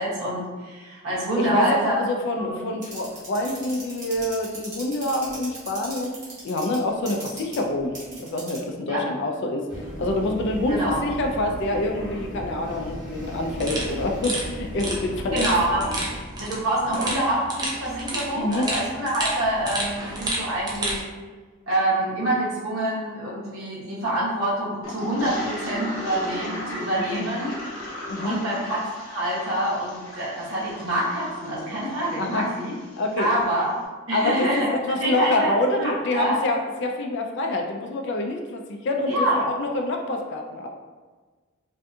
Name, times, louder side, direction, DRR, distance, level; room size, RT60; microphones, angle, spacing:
voice 1, 0.0-2.0 2.4-2.6 8.9-9.1 10.7-11.0 15.3-15.9 16.4-21.0 21.7-27.6 28.2-32.7 33.2-33.8 34.1-36.4 39.1-39.4, right 1 dB, 75° right, -8 dB, 1.0 m, -26 dB
voice 2, 1.4-6.1 6.4-9.7 10.0-15.5 18.4-18.7 27.0-27.3 28.1-28.4 32.2-32.5 33.0-33.3 34.1-40.7, left 1 dB, 55° left, 3 dB, 0.4 m, -26 dB
sound 1, 2.8-8.7 9.7-16.2, right 1 dB, 35° right, 1.0 m, -36 dB
sound 2, 13.6-21.0, right 1 dB, 20° right, 0.4 m, -31 dB
Toilet flush, 24.8-33.4, left 1 dB, 80° left, 0.8 m, -37 dB
2.6 x 2.3 x 2.6 m, 1.3 s
head